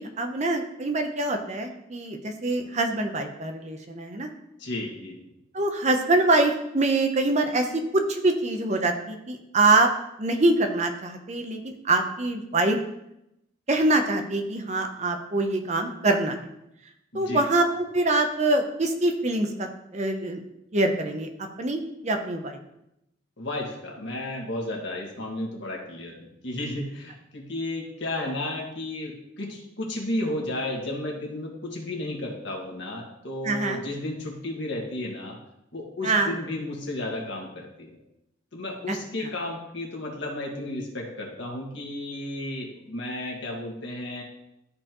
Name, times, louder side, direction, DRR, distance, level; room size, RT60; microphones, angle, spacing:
voice 1, 0.0-4.3 5.5-9.9 10.2-12.8 13.7-16.4 17.1-20.4 20.7-21.3 21.6-22.6 33.4-33.8 36.0-36.3 38.9-39.3, right 2 dB, 35° right, 5 dB, 0.7 m, -24 dB
voice 2, 4.6-5.3 17.1-17.4 23.4-35.4 35.7-38.0 38.5-44.2, left 1 dB, 60° left, -1 dB, 1.7 m, -33 dB
12.5 x 4.3 x 3.0 m, 0.83 s
head